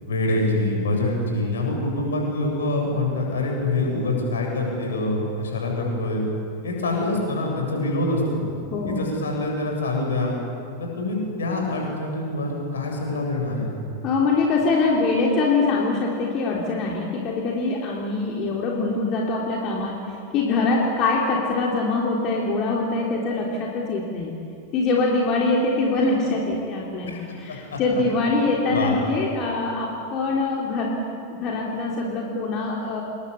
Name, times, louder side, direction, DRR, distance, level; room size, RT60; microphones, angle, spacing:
voice 1, 0.1-6.2 6.6-8.4 8.9-10.4 10.8-13.8 27.1-27.2 27.5-27.8 28.7-28.9, left 2 dB, 65° left, 1 dB, 7.9 m, -25 dB
voice 2, 8.7-9.0 14.0-20.0 20.3-24.3 24.7-31.0 31.3-33.0, left 3 dB, 35° left, -2 dB, 3.7 m, -23 dB
27.5 x 22.5 x 8.4 m, 2.6 s
figure-of-eight pair, 90°, 0 cm